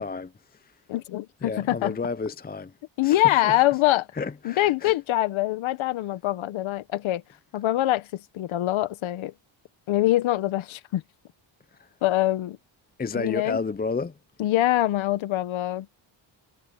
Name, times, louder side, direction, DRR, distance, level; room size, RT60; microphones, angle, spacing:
voice 1, 0.0-0.7 1.4-2.7 3.0-3.6 4.2-4.9 11.8-11.9 13.0-14.1, left 4 dB, 20° left, 0.7 m, -31 dB
voice 2, 0.9-2.0 3.0-4.1 4.4-7.2 7.5-9.3 9.9-11.0 12.0-12.6 13.1-13.6 14.4-15.9, left 15 dB, 85° left, 1.3 m, -24 dB
cardioid pair, 90°, 46 cm